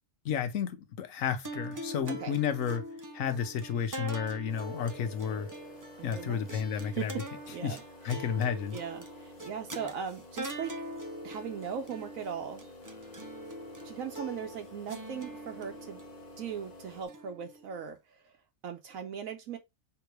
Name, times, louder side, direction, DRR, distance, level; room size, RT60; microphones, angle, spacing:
voice 1, 0.2-2.8 3.1-5.5 6.0-7.1 7.6-7.8 8.0-8.8, left 7 dB, 70° left, 1.2 m, -32 dB
sound 1, 1.4-17.9, right 1 dB, 30° right, 0.3 m, -43 dB
sound 2, 4.5-17.1, left 2 dB, 40° left, 0.7 m, -51 dB
voice 2, 6.0-6.4 6.8-7.1 7.5-7.8 8.1-8.2 8.7-10.7 11.2-12.6 13.8-16.0 16.4-18.3 18.6-19.6, right 7 dB, 75° right, 1.1 m, -39 dB
3.8 x 3.0 x 4.6 m
omnidirectional pair, 1.5 m